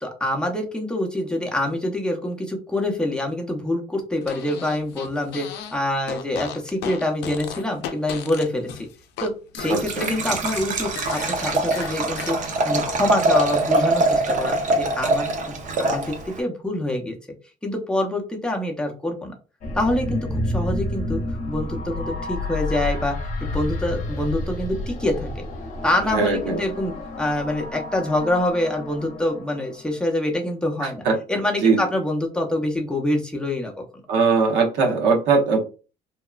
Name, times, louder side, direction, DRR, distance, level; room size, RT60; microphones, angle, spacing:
voice 1, 0.0-8.7 9.2-12.4 12.6-17.2 17.6-19.3 19.7-20.2 20.4-21.2 21.5-23.2 23.4-25.3 25.8-33.8, left 1 dB, 5° left, 1 dB, 0.7 m, -25 dB
Fart, 4.2-5.8 6.0-9.3 9.5-12.3, left 8 dB, 80° left, 0.5 m, -35 dB
Liquid, 9.6-16.4, right 2 dB, 50° right, 0.6 m, -23 dB
voice 2, 9.7-10.1 26.1-26.6 31.0-31.2 31.6-31.8 34.1-35.6, right 4 dB, 80° right, 2 dB, 0.9 m, -20 dB
sound 1, 19.6-30.0, left 1 dB, 50° left, 0.8 m, -30 dB
2.9 x 2.1 x 2.3 m, 0.34 s
cardioid pair, 110°, 17 cm